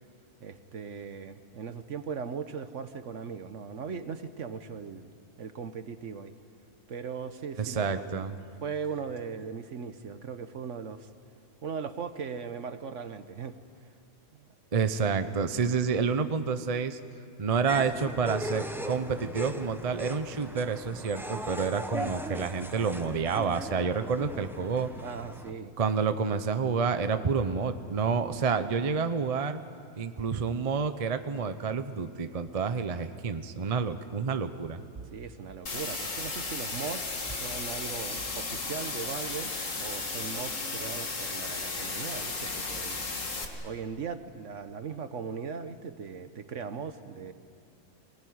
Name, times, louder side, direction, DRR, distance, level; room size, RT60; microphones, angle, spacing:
voice 1, 0.4-5.1 5.4-6.3 6.9-8.1 8.6-11.1 11.6-13.6 14.3-14.5 25.0-25.7 35.1-43.0 43.6-47.3, right 6 dB, 60° right, 10 dB, 1.2 m, -38 dB
voice 2, 7.6-8.3 14.7-17.0 17.4-24.9 25.8-29.6 30.0-34.8, right 5 dB, 35° right, 10 dB, 0.7 m, -29 dB
sound 1, 17.7-25.5, equal, ahead, 0.8 m, -39 dB
sound 2, 35.7-43.5, left 3 dB, 60° left, 2.3 m, -34 dB
24.0 x 18.0 x 9.5 m, 2.3 s
omnidirectional pair, 1.5 m